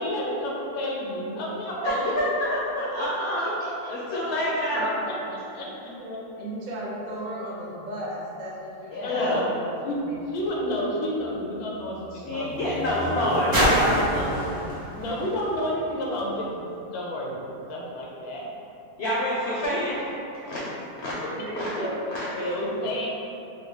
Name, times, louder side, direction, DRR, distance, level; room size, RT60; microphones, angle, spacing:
voice 1, 0.0-2.1 3.0-3.1 3.4-5.7 9.0-9.5 9.8-10.0 10.3-14.3 14.9-18.4 21.2-21.9 22.3-23.1, left 1 dB, 85° left, -3 dB, 1.1 m, -31 dB
voice 2, 1.8-4.9 8.9-9.4 12.2-14.6 19.0-20.0 20.4-20.6 21.0-21.2 21.6-21.7 22.1-22.3, left 1 dB, 65° left, -7 dB, 0.7 m, -27 dB
voice 3, 4.7-5.2 5.8-10.2 19.7-19.9 21.4-22.9, right 1 dB, 75° right, -5 dB, 0.4 m, -35 dB
sound 1, 10.0-16.5 17.3-17.4, right 1 dB, 50° right, 1.0 m, -30 dB
3.8 x 2.0 x 3.0 m, 2.8 s
omnidirectional pair, 1.6 m